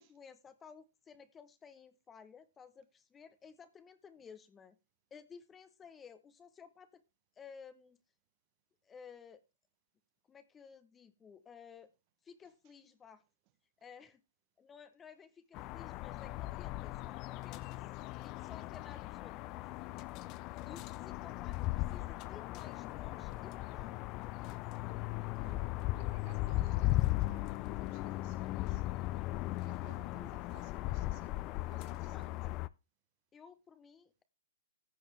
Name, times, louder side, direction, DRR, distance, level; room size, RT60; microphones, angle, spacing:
voice 1, 0.0-4.8 5.1-7.0 7.4-8.0 8.8-9.4 10.3-11.9 12.2-13.2 13.8-14.2 14.6-17.8 18.2-19.6 20.6-24.0 32.1-32.6 33.3-34.2, left 6 dB, 15° left, 0.9 m, -55 dB
sound 1, 15.5-32.7, left 17 dB, 35° left, 0.4 m, -37 dB
voice 2, 25.1-29.0 29.4-32.6, right 14 dB, 40° right, 1.0 m, -60 dB
15.0 x 7.1 x 3.3 m
hypercardioid pair, 130°, 0 cm